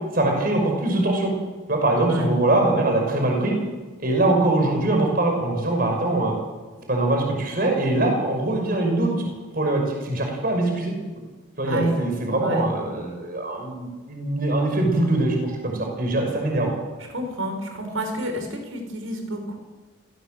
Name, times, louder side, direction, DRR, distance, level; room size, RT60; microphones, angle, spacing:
voice 1, 0.1-1.3 1.7-3.6 4.0-6.3 6.9-9.1 9.5-10.9 11.6-16.7, right 2 dB, 45° right, 2 dB, 5.8 m, -22 dB
voice 2, 11.6-12.0 12.4-12.7 17.1-19.6, right 1 dB, 80° right, 4 dB, 6.2 m, -28 dB
28.0 x 17.0 x 7.8 m, 1.3 s
head